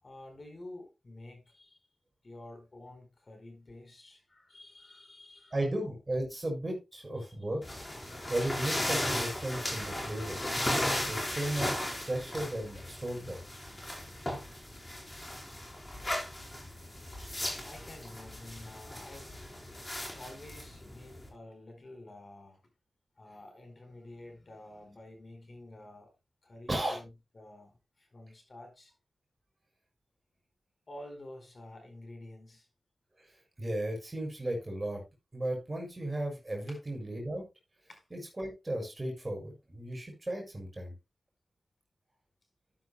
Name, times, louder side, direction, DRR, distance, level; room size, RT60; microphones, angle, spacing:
voice 1, 0.0-1.8 2.2-5.6 7.2-7.3 17.6-19.4 20.1-22.6 23.2-26.1 26.4-28.9 30.9-32.7 36.7-36.8 37.9-38.0, left 1 dB, 45° left, 4.6 m, -50 dB
voice 2, 5.5-7.6 8.3-10.4 11.0-13.4 26.7-27.0 33.2-33.3 33.6-35.0 35.3-37.5 38.1-40.9, right 1 dB, 25° right, 6.7 m, -35 dB
sound 1, 7.6-21.3, left 1 dB, 30° left, 4.5 m, -36 dB
13.5 x 10.0 x 2.2 m
cardioid pair, 70°, 0 cm